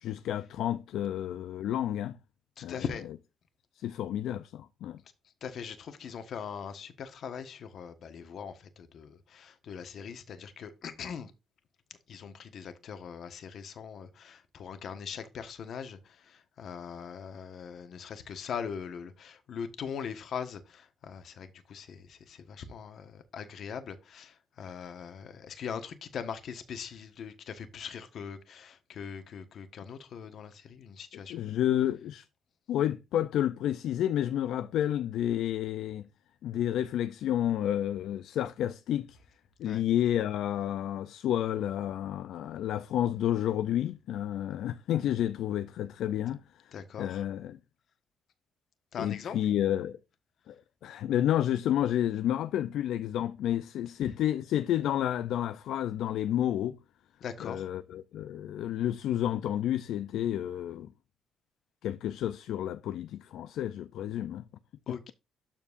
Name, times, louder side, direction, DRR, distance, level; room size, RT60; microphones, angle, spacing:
voice 1, 0.0-2.2 2.6-2.8 3.8-5.0 31.3-32.3 32.7-36.1 36.4-39.2 39.6-46.4 47.0-47.6 49.0-50.0 50.5-50.6 50.8-56.8 57.4-60.9 61.8-64.4 64.9-65.1, left 11 dB, 80° left, 0.4 m, -30 dB
voice 2, 2.6-3.0 5.4-11.3 12.1-31.5 39.6-39.8 46.7-47.2 48.9-49.4 54.0-54.1 57.2-57.7 64.9-65.1, left 7 dB, 65° left, 1.4 m, -41 dB
12.5 x 4.5 x 2.6 m
cardioid pair, 90°, 0 cm